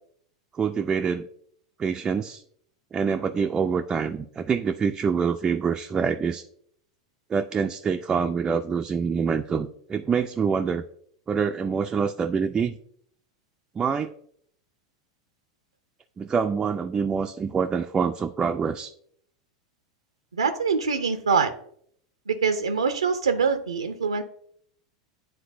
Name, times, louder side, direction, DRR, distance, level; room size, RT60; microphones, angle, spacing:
voice 1, 0.5-1.3 1.8-2.4 2.9-6.4 7.3-10.8 11.3-12.8 13.8-14.1 16.2-18.9, right 6 dB, 20° right, 5 dB, 0.3 m, -26 dB
voice 2, 20.3-21.5 22.3-24.2, right 5 dB, 80° right, 9 dB, 0.5 m, -24 dB
10.0 x 3.8 x 2.6 m, 0.65 s
figure-of-eight pair, 90°, 3 cm